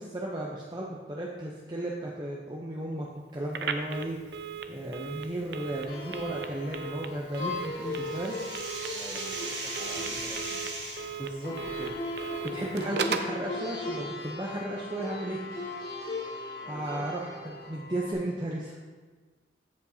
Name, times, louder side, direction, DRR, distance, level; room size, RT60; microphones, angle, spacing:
voice 1, 0.0-3.1 3.3-4.4 4.7-8.4 11.2-15.4 16.7-18.8, right 1 dB, 25° right, -3 dB, 0.7 m, -35 dB
Telephone, 3.5-13.4, right 5 dB, 65° right, 0.5 m, -37 dB
sound 1, 5.9-18.1, left 2 dB, 60° left, 2.7 m, -39 dB
sound 2, 7.3-11.2, right 2 dB, 80° right, 1.9 m, -38 dB
voice 2, 8.9-10.7 16.6-17.1, equal, ahead, -6 dB, 1.8 m, -47 dB
14.5 x 5.2 x 2.7 m, 1.4 s
head